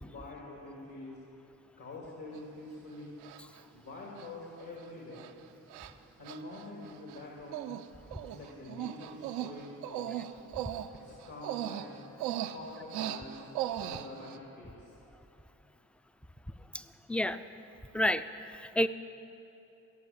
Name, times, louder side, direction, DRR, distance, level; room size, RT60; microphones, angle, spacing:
voice 1, 0.0-1.2 1.8-3.2 3.7-5.3 6.2-7.6 8.2-10.1 10.9-11.9 12.3-13.4 13.8-14.9, left 2 dB, 60° left, -3 dB, 2.6 m, -46 dB
Human voice, 2.4-2.5 3.2-3.6 4.2-4.3 4.6-4.8 5.1-5.3 5.7-5.9 6.3-7.2 7.5-7.8 8.1-14.4, right 12 dB, 85° right, 0.5 m, -38 dB
voice 2, 17.1-17.4 17.9-18.9, left 1 dB, 5° left, 12 dB, 0.5 m, -30 dB
17.0 x 6.8 x 7.3 m, 2.9 s
hypercardioid pair, 50°, 39 cm